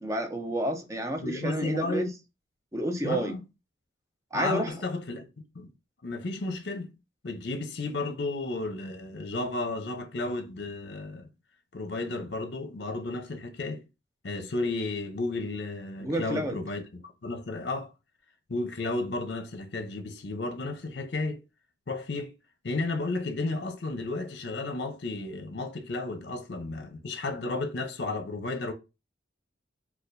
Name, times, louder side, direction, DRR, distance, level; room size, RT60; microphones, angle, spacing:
voice 1, 0.0-2.1 2.7-3.3 4.3-4.7 16.0-16.6, right 1 dB, 15° right, 0.5 m, -30 dB
voice 2, 1.2-2.1 3.0-3.4 4.3-5.3 5.5-5.7 6.0-6.9 7.2-11.3 11.7-13.8 14.2-17.9 18.5-21.4 21.9-22.3 22.6-28.7, left 2 dB, 60° left, 0.6 m, -33 dB
4.2 x 2.3 x 2.5 m
head